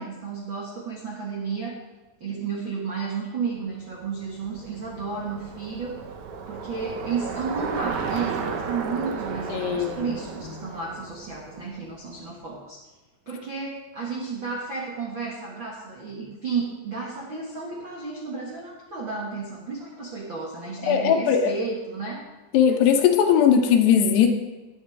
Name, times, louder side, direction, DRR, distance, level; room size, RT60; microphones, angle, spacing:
voice 1, 0.0-1.8 2.2-6.0 6.5-12.8 13.2-22.3, right 5 dB, 60° right, -4 dB, 1.3 m, -32 dB
Bicycle, 3.8-12.1, right 5 dB, 80° right, 1.7 m, -34 dB
voice 2, 9.5-10.0 20.9-21.5 22.5-24.3, left 8 dB, 75° left, 4 dB, 3.1 m, -19 dB
18.5 x 8.7 x 3.5 m, 1.2 s
omnidirectional pair, 4.9 m